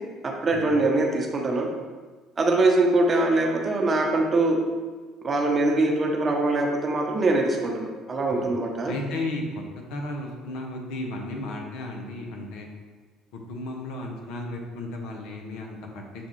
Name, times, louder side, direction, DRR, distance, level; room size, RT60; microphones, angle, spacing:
voice 1, 0.2-1.7 2.4-4.6 5.2-8.9, right 2 dB, 35° right, 1 dB, 0.8 m, -23 dB
voice 2, 8.8-9.6 9.9-12.7 13.3-16.3, left 2 dB, 70° left, 1 dB, 0.6 m, -34 dB
6.8 x 2.3 x 3.0 m, 1.4 s
hypercardioid pair, 60°, 0 cm